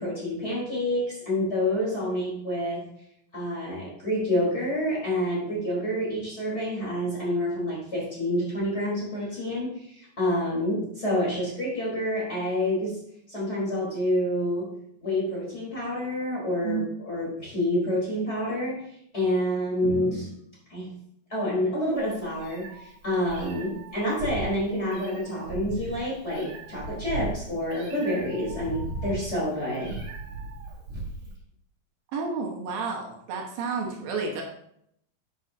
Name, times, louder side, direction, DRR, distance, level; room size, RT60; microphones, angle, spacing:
voice 1, 0.0-2.8 3.3-13.0 13.3-14.7 15.0-18.8 19.1-20.3 20.7-20.9 21.3-30.0, left 1 dB, 20° left, -6 dB, 4.0 m, -28 dB
Meow, 22.0-31.3, right 2 dB, 65° right, 2.9 m, -37 dB
voice 2, 32.1-34.4, right 5 dB, 85° right, 1 dB, 3.2 m, -31 dB
10.5 x 8.3 x 2.8 m, 0.71 s
omnidirectional pair, 4.0 m